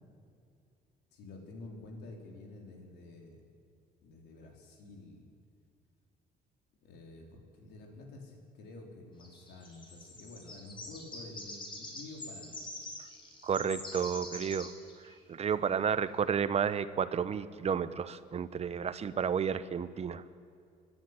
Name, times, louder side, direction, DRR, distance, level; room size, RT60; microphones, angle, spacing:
voice 1, 1.1-3.4 4.0-5.3 6.8-12.6, left 2 dB, 80° left, 1 dB, 4.2 m, -49 dB
sound 1, 9.2-15.1, left 2 dB, 30° left, 5.1 m, -45 dB
voice 2, 13.4-14.7 15.3-20.2, right 7 dB, 40° right, 14 dB, 0.9 m, -31 dB
25.5 x 10.5 x 9.9 m, 2.4 s
cardioid pair, 110°, 17 cm